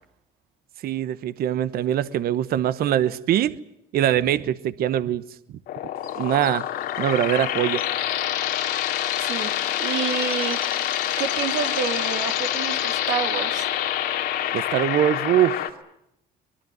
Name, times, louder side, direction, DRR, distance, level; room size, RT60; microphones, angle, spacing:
voice 1, 0.8-3.6 3.9-5.2 6.2-6.6 7.0-7.8 14.5-15.6, right 11 dB, 65° right, 15 dB, 1.0 m, -22 dB
sound 1, 5.7-15.7, left 12 dB, 85° left, 2.7 m, -26 dB
Chirp tweet, 6.0-13.1 13.4-14.3 14.6-14.7, left 10 dB, 60° left, 3.1 m, -41 dB
voice 2, 9.2-9.5 9.8-10.6 11.2-13.7, right 7 dB, 90° right, 6 dB, 3.2 m, -28 dB
24.5 x 21.0 x 9.4 m, 0.79 s
cardioid pair, 110°, 17 cm